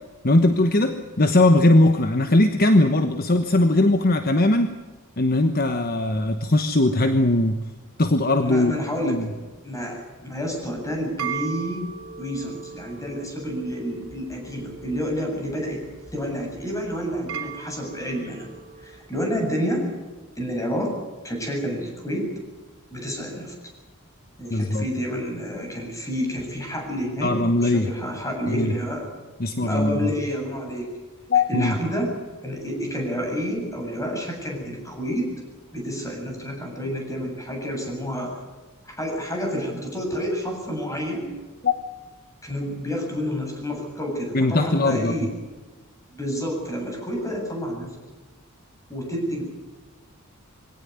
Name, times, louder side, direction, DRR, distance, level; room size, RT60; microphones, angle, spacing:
voice 1, 0.2-4.7 5.2-7.6 8.0-8.7 9.0-9.3 24.5-24.8 27.2-27.9 28.5-28.7 29.4-30.1 31.3-31.7 41.6-41.7 44.3-45.3, left 2 dB, 45° left, 7 dB, 1.2 m, -20 dB
voice 2, 8.4-11.9 12.2-15.8 16.1-18.5 18.8-19.9 20.4-20.9 21.2-22.3 22.9-23.5 24.4-29.1 29.6-30.9 31.5-32.1 32.4-35.3 35.7-38.3 38.8-41.3 42.4-45.3 46.1-47.9 48.9-49.4, equal, 15° left, 1 dB, 7.8 m, -29 dB
sound 1, 10.6-19.1, right 6 dB, 75° right, 3.1 m, -38 dB
23.5 x 17.5 x 9.5 m, 1.3 s
head